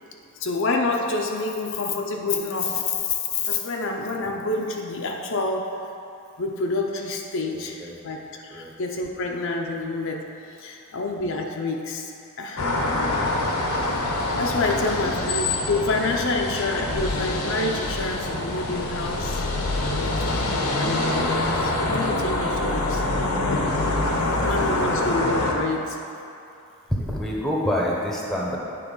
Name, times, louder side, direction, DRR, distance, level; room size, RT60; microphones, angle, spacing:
voice 1, 0.4-5.7 6.4-10.3 10.6-12.1 12.4-13.3 14.4-19.4 20.0-20.5 20.8-23.0 24.4-26.0, left 3 dB, 60° left, 1 dB, 0.6 m, -28 dB
voice 2, 7.5-8.0 8.5-8.7 10.6-10.8 14.7-15.3 24.1-24.6 24.8-25.0 26.9-28.6, equal, ahead, -3 dB, 0.9 m, -28 dB
sound 1, 12.6-25.5, left 2 dB, 90° left, 0.9 m, -25 dB
9.3 x 4.0 x 5.4 m, 2.6 s
head